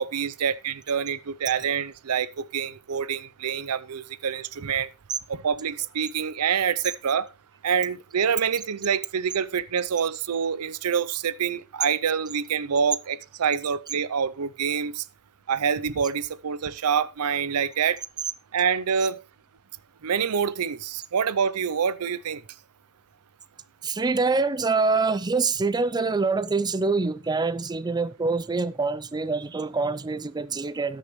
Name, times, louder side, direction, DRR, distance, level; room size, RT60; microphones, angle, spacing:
voice 1, 0.0-4.9 5.3-7.3 7.6-15.0 15.5-18.0 18.5-19.2 20.0-22.4, right 7 dB, 80° right, 0.6 m, -26 dB
voice 2, 23.8-31.0, right 4 dB, 20° right, 0.4 m, -25 dB
18.5 x 6.5 x 3.1 m
head